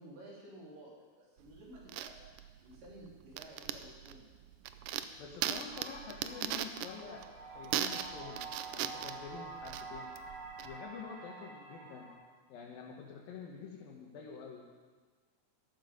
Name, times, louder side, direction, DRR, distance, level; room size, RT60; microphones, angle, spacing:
voice 1, 0.0-2.2 2.6-4.4, right 1 dB, 60° right, -5 dB, 5.2 m, -53 dB
sound 1, 1.4-10.8, right 11 dB, 80° right, 2.0 m, -39 dB
voice 2, 5.2-8.4 8.7-10.2 10.6-12.1 12.5-14.7, left 6 dB, 75° left, -2 dB, 2.9 m, -47 dB
sound 2, 5.7-12.1, right 4 dB, 45° right, 3.6 m, -48 dB
13.0 x 13.0 x 5.3 m, 1.4 s
omnidirectional pair, 4.3 m